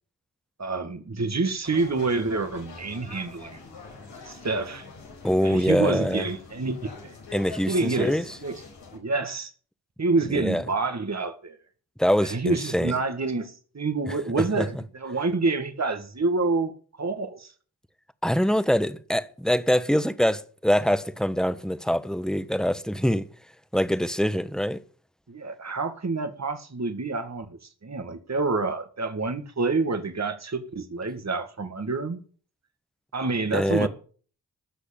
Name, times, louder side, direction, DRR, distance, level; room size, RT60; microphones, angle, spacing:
voice 1, 0.6-3.6 4.2-4.9 5.4-7.2 7.7-8.6 8.9-9.5 10.0-11.6 12.2-16.7 17.0-17.5 25.3-32.2 33.1-33.9, right 3 dB, 40° right, 2.0 m, -28 dB
sound 1, 1.6-9.0, left 4 dB, 85° left, 4.4 m, -44 dB
voice 2, 5.2-6.3 7.3-8.2 10.3-10.6 12.0-12.9 14.1-14.2 14.6-14.7 18.2-23.3 23.7-24.8 33.5-33.9, equal, ahead, 1.4 m, -24 dB
15.5 x 6.4 x 8.8 m
cardioid pair, 40°, 42 cm